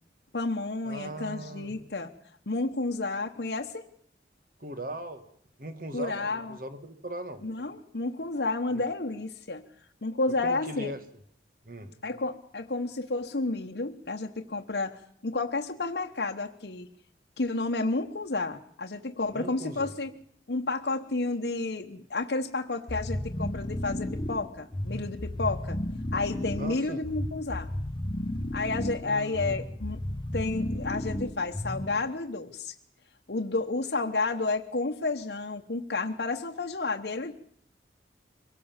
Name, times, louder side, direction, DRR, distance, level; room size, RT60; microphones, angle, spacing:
voice 1, 0.3-2.1 2.5-3.8 5.9-6.6 7.4-9.6 10.0-10.9 12.0-15.0 15.2-16.9 17.4-20.1 20.5-25.8 26.1-27.7 28.5-30.0 30.3-32.7 33.3-37.3, left 3 dB, 75° left, 3 dB, 1.1 m, -31 dB
voice 2, 0.8-1.7 4.6-5.2 5.6-7.4 8.7-8.8 10.4-11.0 11.7-11.9 19.3-19.9 26.6-27.0 29.0-29.6, right 1 dB, 50° right, 9 dB, 1.9 m, -39 dB
sound 1, 22.9-32.1, left 1 dB, 30° left, 0.9 m, -34 dB
24.0 x 16.5 x 7.3 m, 0.64 s
head